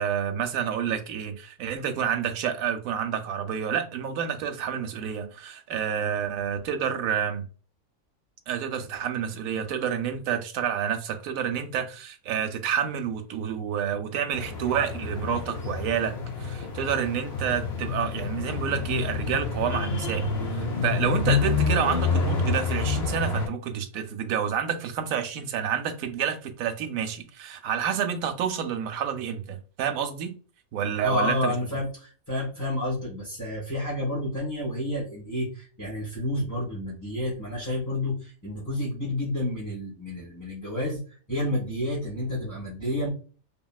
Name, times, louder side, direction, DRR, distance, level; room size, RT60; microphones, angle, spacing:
voice 1, 0.0-7.5 8.5-20.3 20.6-30.3 30.7-31.5, right 8 dB, 70° right, 0.9 m, -29 dB
sound 1, 14.3-23.5, left 4 dB, 50° left, 0.9 m, -28 dB
voice 2, 31.0-41.0 41.3-43.1, left 1 dB, 15° left, 1.2 m, -30 dB
2.9 x 2.6 x 2.3 m
omnidirectional pair, 1.6 m